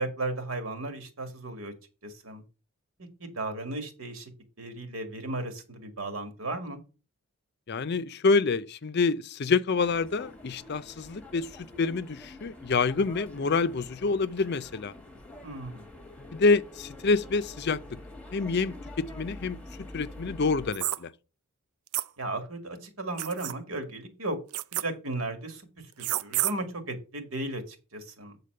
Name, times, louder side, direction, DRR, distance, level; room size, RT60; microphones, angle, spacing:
voice 1, 0.0-1.7 2.0-2.4 3.2-4.3 4.6-6.8 15.4-15.9 22.2-24.4 24.8-25.7 26.0-28.3, right 2 dB, 70° right, 1.9 m, -35 dB
voice 2, 7.7-14.9 16.3-17.8 18.3-19.6 19.9-21.1, left 4 dB, 50° left, 0.5 m, -27 dB
sound 1, 9.7-20.7, left 1 dB, 5° left, 1.1 m, -46 dB
sound 2, 20.7-21.0 21.9-22.1 23.2-23.5 24.5-24.8 26.0-26.5, right 14 dB, 85° right, 0.4 m, -29 dB
8.4 x 4.1 x 6.5 m
head